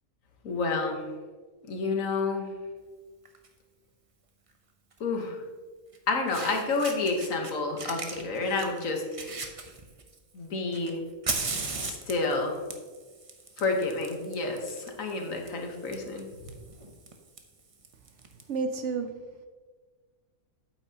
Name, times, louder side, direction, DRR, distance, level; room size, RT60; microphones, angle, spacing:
voice 1, 0.4-1.0 1.7-2.5 5.0-5.4 6.1-9.0 10.3-11.0 11.8-12.6 13.6-16.2, left 3 dB, 70° left, 2 dB, 1.5 m, -29 dB
Fire, 3.2-3.5 4.9-5.0 5.9-6.0 6.3-7.5 7.8-10.2 10.7-18.4, right 4 dB, 35° right, 0.5 m, -38 dB
voice 2, 18.5-19.5, right 4 dB, 65° right, 7 dB, 0.8 m, -32 dB
8.6 x 8.4 x 2.8 m, 1.4 s
omnidirectional pair, 1.5 m